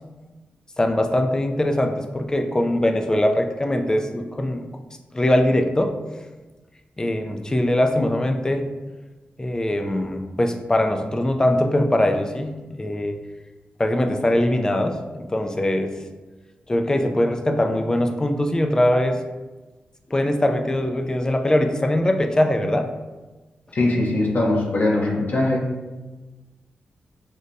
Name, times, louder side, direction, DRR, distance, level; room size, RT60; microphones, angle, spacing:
voice 1, 0.8-4.6 5.1-6.0 7.0-8.6 9.4-13.2 13.8-15.9 16.7-19.2 20.1-22.9, left 1 dB, 20° left, 5 dB, 0.4 m, -21 dB
voice 2, 23.7-25.7, left 2 dB, 55° left, -2 dB, 0.8 m, -21 dB
5.1 x 2.2 x 2.6 m, 1.2 s
cardioid pair, 70°, 4 cm